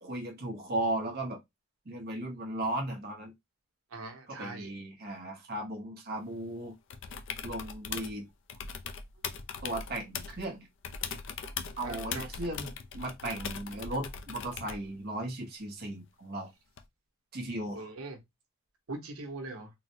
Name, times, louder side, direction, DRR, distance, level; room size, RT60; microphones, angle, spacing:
voice 1, 0.0-1.4 1.9-3.3 4.3-6.7 7.4-8.3 9.6-10.7 11.8-16.5 17.3-17.9, right 1 dB, 45° right, 0.8 m, -36 dB
voice 2, 3.9-4.7 11.4-12.3 17.7-18.2 18.9-19.7, right 2 dB, 85° right, 1.0 m, -42 dB
sound 1, 6.9-8.2 8.5-10.5 10.8-14.9 16.8-16.9, left 6 dB, 60° left, 0.5 m, -40 dB
3.8 x 2.1 x 2.7 m
head